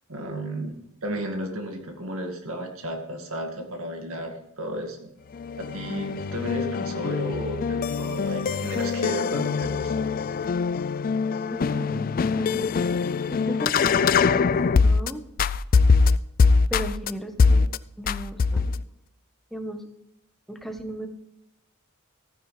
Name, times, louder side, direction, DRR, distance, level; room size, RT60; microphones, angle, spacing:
voice 1, 0.1-0.8 1.0-5.1 5.6-10.0, right 1 dB, 65° right, 3 dB, 2.1 m, -33 dB
sound 1, 5.3-15.1 15.4-17.1 17.4-17.8 18.1-18.8, left 5 dB, 40° left, 0.3 m, -23 dB
voice 2, 11.5-13.0 13.3-15.2 16.7-17.7 18.0-18.7 19.5-19.8 20.5-21.1, equal, ahead, 5 dB, 1.1 m, -36 dB
14.5 x 9.6 x 3.3 m, 0.84 s
head